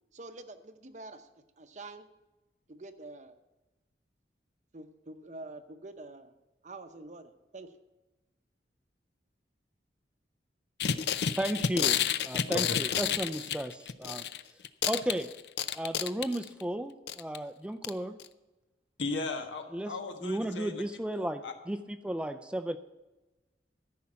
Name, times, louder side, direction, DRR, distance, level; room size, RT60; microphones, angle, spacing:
voice 1, 0.1-1.3 1.6-2.1 2.7-3.4 4.7-6.3 6.6-7.7, right 2 dB, 40° right, 9 dB, 0.8 m, -46 dB
sound 1, 10.8-14.4 14.6-16.6 17.1-17.4 17.8-17.9 18.2-18.3, left 9 dB, 65° left, 0.5 m, -30 dB
voice 2, 11.4-14.2 14.8-15.3 15.7-18.2 19.7-19.9 20.2-22.8, right 1 dB, 5° right, 11 dB, 0.4 m, -34 dB
voice 3, 12.5-12.8 19.0-20.8 21.4-21.5, left 3 dB, 85° left, 5 dB, 1.5 m, -36 dB
14.0 x 5.8 x 8.5 m, 1.1 s
head